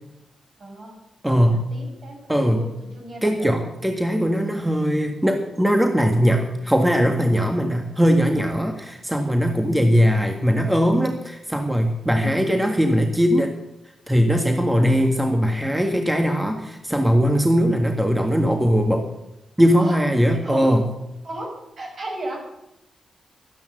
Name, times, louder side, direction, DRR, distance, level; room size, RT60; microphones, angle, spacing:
voice 1, 0.6-1.0 1.3-2.2 2.5-2.7 2.9-3.5 9.6-9.9 12.1-12.4 19.8-20.0 20.3-20.7 21.2-22.5, right 1 dB, 55° right, 1 dB, 5.9 m, -34 dB
voice 2, 1.2-1.7 2.3-2.7 3.2-13.5 14.1-19.1 19.6-20.8, equal, 10° right, 4 dB, 1.7 m, -20 dB
13.0 x 10.5 x 7.8 m, 0.88 s
cardioid pair, 70°, 0 cm